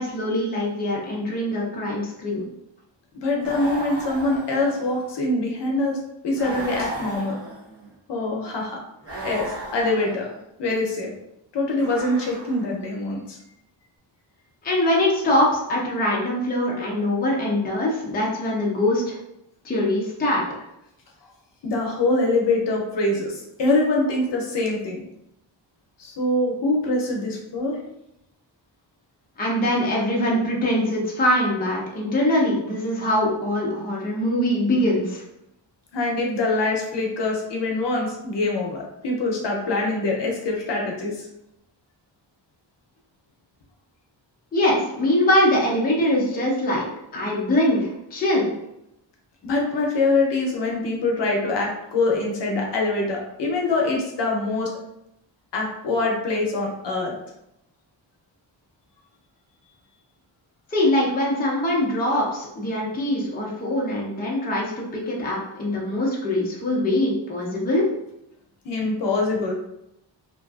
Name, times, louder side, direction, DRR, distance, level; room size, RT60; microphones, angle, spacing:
voice 1, 0.0-2.5 14.6-19.2 19.6-20.4 29.4-35.2 44.5-48.5 60.7-67.9, left 1 dB, 20° left, -4 dB, 0.5 m, -23 dB
voice 2, 3.1-6.0 6.2-7.4 8.1-8.8 9.2-10.3 10.6-11.1 11.5-13.4 21.6-25.0 26.0-27.8 35.9-41.3 49.4-54.7 55.5-57.1 68.6-69.5, left 2 dB, 65° left, -1 dB, 0.7 m, -24 dB
sound 1, 3.4-5.2 6.4-7.9 9.0-10.4 11.7-12.8, right 2 dB, 30° right, 0.6 m, -36 dB
2.6 x 2.4 x 2.3 m, 0.82 s
wide cardioid pair, 165°, 45 cm